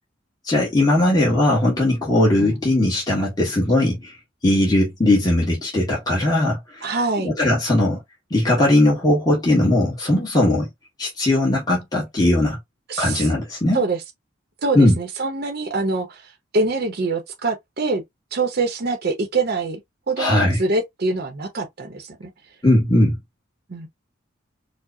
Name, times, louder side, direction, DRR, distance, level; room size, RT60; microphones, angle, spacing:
voice 1, 0.4-4.2 4.4-6.8 7.2-8.0 8.3-10.7 11.0-12.6 13.0-13.8 14.7-15.0 20.2-20.6 22.6-23.2, left 1 dB, 20° left, 1.1 m, -19 dB
voice 2, 6.8-7.3 12.9-13.3 13.7-14.0 14.6-18.0 18.3-19.8 20.1-22.3 23.7-23.9, right 3 dB, 50° right, 0.7 m, -24 dB
4.6 x 2.0 x 2.6 m
head